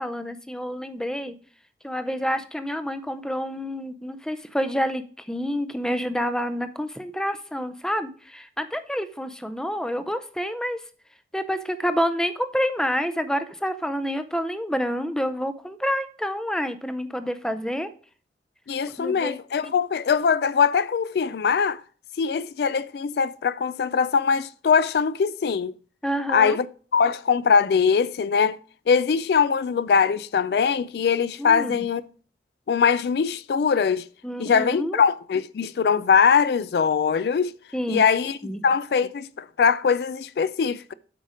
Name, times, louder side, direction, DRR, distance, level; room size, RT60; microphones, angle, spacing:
voice 1, 0.0-1.4 1.8-10.8 11.3-17.9 19.0-19.3 19.6-19.7 26.0-26.6 31.4-31.7 34.2-35.0 37.7-38.0 38.4-38.6, equal, 5° left, 0.5 m, -28 dB
voice 2, 18.7-21.8 22.2-25.7 26.3-26.7 26.9-28.6 28.9-32.0 32.7-34.0 34.4-37.5 37.9-38.4 38.6-40.9, left 6 dB, 60° left, 0.3 m, -22 dB
8.3 x 5.0 x 5.0 m
head